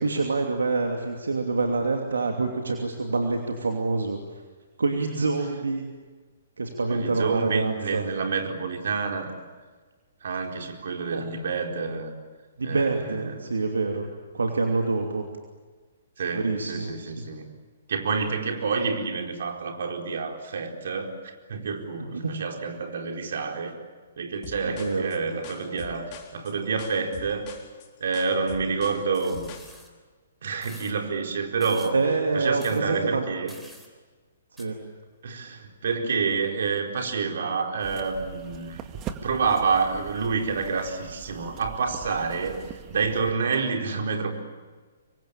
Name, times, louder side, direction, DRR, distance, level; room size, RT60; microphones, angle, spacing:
voice 1, 0.0-4.2 4.8-5.8 6.6-8.1 11.1-11.3 12.6-15.3 16.3-17.3 22.1-22.4 24.6-25.1 31.9-33.2 34.6-34.8, right 3 dB, 80° right, 3 dB, 2.8 m, -26 dB
voice 2, 6.9-9.3 10.2-12.1 12.6-13.6 16.2-17.5 17.9-23.8 24.2-27.5 28.0-29.5 30.4-32.0 32.3-33.5 35.2-38.9 39.2-44.3, right 5 dB, 65° right, 4 dB, 4.3 m, -28 dB
sound 1, 24.4-29.7, left 7 dB, 35° left, 4.0 m, -44 dB
sound 2, 29.1-29.9 30.6-30.9 31.6-31.9 32.6-32.8 33.5-33.9 34.6-34.7, equal, 5° right, 3.8 m, -48 dB
sound 3, 37.8-43.3, right 8 dB, 25° right, 2.0 m, -42 dB
26.5 x 24.0 x 8.9 m, 1.4 s
figure-of-eight pair, 125°, 0 cm